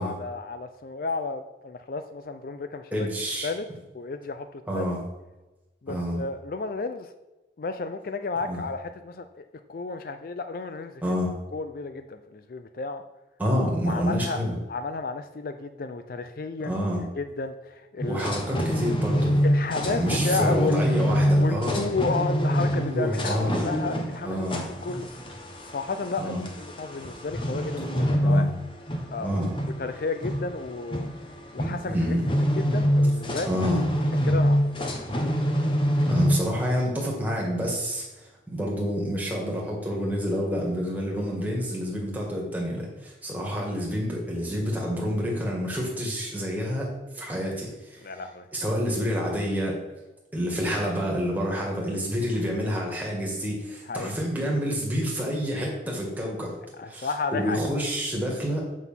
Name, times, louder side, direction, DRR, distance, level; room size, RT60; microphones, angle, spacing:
voice 1, 0.0-3.1 3.4-3.7 3.9-4.8 5.8-7.1 7.6-11.0 11.5-13.0 13.9-14.4 14.7-16.8 17.2-18.2 19.4-20.8 21.4-24.5 24.8-25.1 25.7-28.5 29.1-29.5 29.8-31.1 31.5-32.1 32.6-33.5 34.2-35.1 48.0-48.5 53.9-54.1 56.8-57.6, left 4 dB, 50° left, 9 dB, 0.4 m, -32 dB
voice 2, 2.9-3.5 4.7-5.0 5.9-6.2 8.4-8.6 11.0-11.3 13.4-14.5 16.6-17.0 18.1-19.4 19.9-21.9 22.7-23.7 24.2-24.6 26.2-26.5 28.2-28.5 29.2-29.5 31.9-32.2 33.5-33.8 36.0-48.1 48.5-49.8 50.3-56.5 56.9-58.6, equal, 10° right, -3 dB, 2.0 m, -28 dB
sound 1, 18.0-36.4, equal, 30° left, 1.0 m, -26 dB
7.3 x 6.0 x 5.7 m, 1.1 s
head